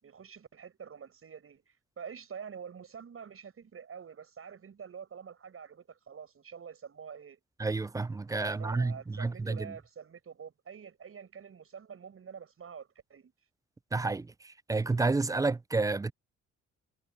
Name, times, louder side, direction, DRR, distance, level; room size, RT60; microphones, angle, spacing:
voice 1, 0.0-7.4 8.4-13.3, right 7 dB, 45° right, 7.5 m, -47 dB
voice 2, 7.6-9.7 13.9-16.1, right 3 dB, 10° right, 0.3 m, -30 dB
cardioid pair, 90°, 30 cm